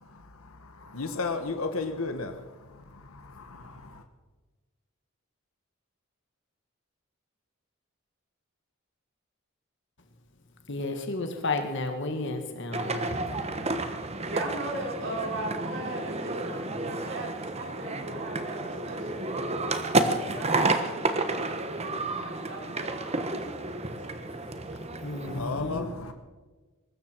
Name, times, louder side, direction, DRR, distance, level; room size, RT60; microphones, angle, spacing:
voice 1, 0.0-4.0 25.2-26.1, left 3 dB, 90° left, 1.3 m, -35 dB
voice 2, 10.7-13.3 25.0-25.9, left 2 dB, 60° left, 1.7 m, -32 dB
sound 1, 12.7-25.4, right 2 dB, 30° right, 1.2 m, -31 dB
voice 3, 14.3-24.7, right 2 dB, 55° right, 4.3 m, -39 dB
22.0 x 13.0 x 4.6 m
head